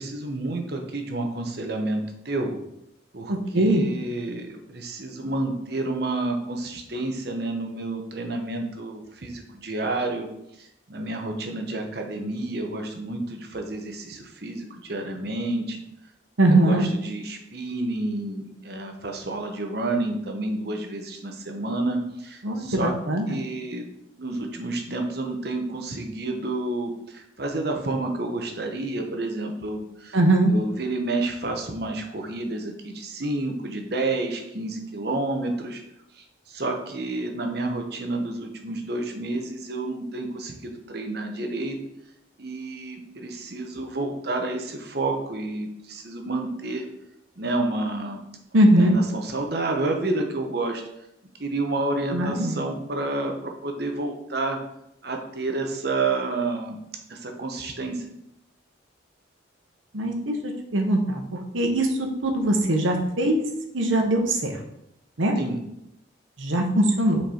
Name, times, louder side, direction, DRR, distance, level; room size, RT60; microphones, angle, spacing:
voice 1, 0.0-2.6 3.1-10.3 10.6-15.8 16.5-22.9 23.3-23.9 24.2-30.2 30.5-35.8 36.2-41.8 42.4-46.8 47.4-48.2 48.6-50.8 51.4-54.6 55.0-56.8 57.1-58.0 65.4-65.6, right 2 dB, 55° right, 3 dB, 1.0 m, -30 dB
voice 2, 3.3-3.8 16.4-16.9 22.4-23.4 30.1-30.5 48.5-49.0 52.1-52.6 59.9-61.9 62.2-63.4 63.7-64.6 65.2-65.4 66.4-67.2, right 1 dB, 85° right, 3 dB, 1.1 m, -21 dB
5.9 x 4.6 x 4.4 m, 0.80 s
head